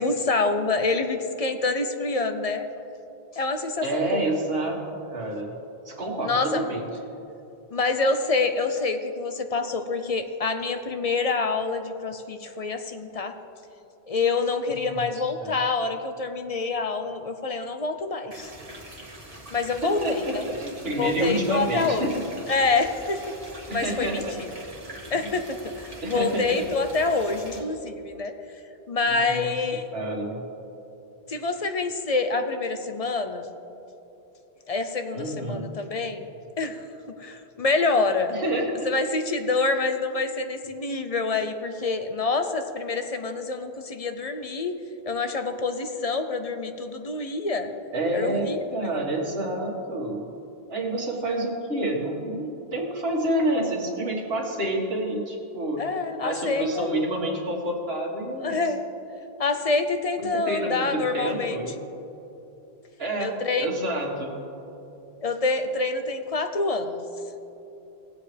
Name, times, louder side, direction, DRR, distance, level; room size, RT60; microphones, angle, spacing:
voice 1, 0.0-2.6 3.3-4.3 6.2-6.7 7.7-13.3 14.1-18.5 19.5-20.4 21.0-22.1 22.5-23.3 23.7-24.2 25.1-28.3 28.9-29.8 31.3-33.5 34.7-36.3 36.6-36.9 37.2-38.4 38.8-44.7 45.1-47.7 48.1-49.0 55.8-57.1 58.4-58.8 59.4-61.6 63.2-63.7 65.2-67.0, left 3 dB, 40° left, 7 dB, 0.6 m, -26 dB
voice 2, 3.8-4.8 5.1-5.5 5.9-6.8 14.8-15.5 19.8-22.1 23.7-24.4 25.1-25.4 26.0-26.6 29.0-29.5 29.9-30.4 35.1-35.7 38.3-38.9 47.9-50.3 50.7-55.8 56.2-58.6 60.2-61.8 63.0-64.3, right 1 dB, 70° right, -2 dB, 2.1 m, -28 dB
sound 1, 18.3-27.6, right 1 dB, 35° right, 1.7 m, -43 dB
19.5 x 7.9 x 3.4 m, 3.0 s
omnidirectional pair, 1.0 m